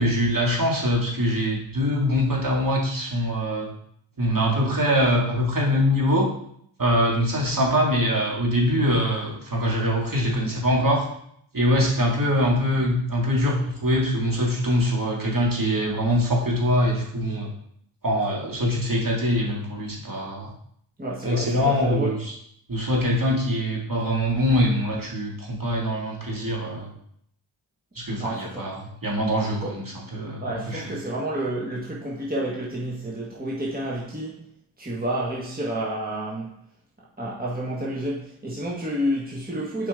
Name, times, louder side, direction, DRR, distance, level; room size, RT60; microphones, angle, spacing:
voice 1, 0.0-3.7 4.2-6.3 6.8-11.1 11.5-17.5 18.0-20.5 21.2-22.3 22.7-26.9 28.0-30.8, equal, 40° right, 2.4 m, -23 dB
voice 2, 21.0-22.2 28.2-28.7 29.6-29.8 30.4-34.4 34.8-36.6 37.2-39.9, right 1 dB, 20° right, 1.6 m, -29 dB
7.2 x 5.1 x 3.7 m
cardioid pair, 50°, 49 cm